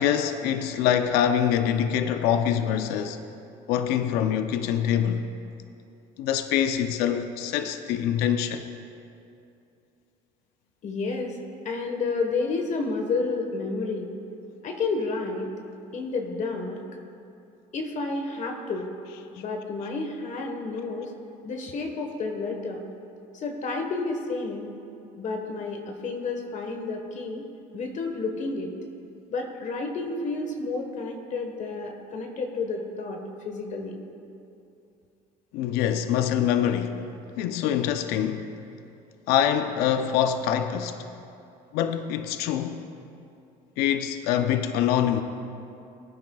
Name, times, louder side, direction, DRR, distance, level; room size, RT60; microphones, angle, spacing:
voice 1, 0.0-3.2 3.7-5.3 6.2-8.7 35.5-37.0 37.4-38.5 39.3-41.1 41.7-42.9 43.8-45.2, left 9 dB, 80° left, 0.5 m, -25 dB
voice 2, 10.8-11.4 11.6-14.1 14.6-15.5 15.9-16.8 17.7-18.9 19.3-21.1 21.4-22.8 23.3-24.7 25.1-27.4 27.7-28.7 29.3-33.2 33.4-34.0, left 3 dB, 50° left, 1.3 m, -30 dB
20.5 x 9.5 x 2.3 m
supercardioid pair, 95°, 16 cm